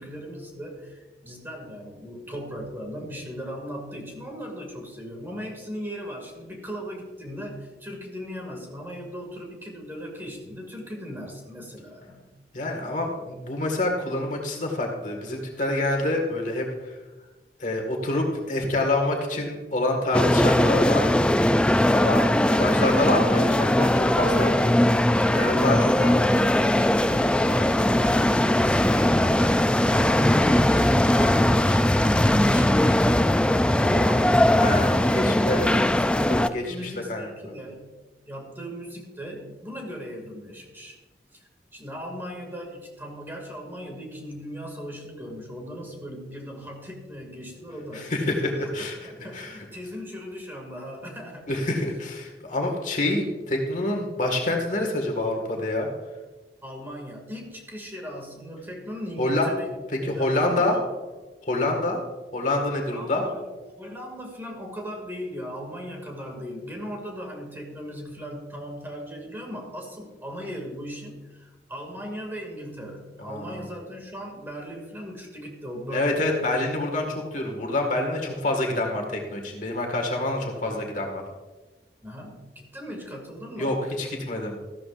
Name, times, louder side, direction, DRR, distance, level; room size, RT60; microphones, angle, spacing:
voice 1, 0.0-12.3 26.8-32.2 32.4-37.9 38.3-41.0 41.3-48.5 49.0-51.6 56.6-59.8 60.0-60.8 62.9-63.5 63.8-76.5 82.0-83.8, equal, 10° right, 0 dB, 2.3 m, -38 dB
voice 2, 12.5-16.9 17.6-21.1 21.9-23.9 24.1-24.5 25.2-26.1 34.6-35.7 36.3-37.3 47.9-49.6 51.5-55.9 59.2-59.5 60.0-60.8 61.4-62.0 62.3-63.2 73.2-73.6 75.9-81.2 83.6-84.7, left 2 dB, 45° left, 2 dB, 1.9 m, -27 dB
sound 1, 20.1-36.5, left 1 dB, 5° left, 0.3 m, -20 dB
14.5 x 12.5 x 2.6 m, 1.2 s
head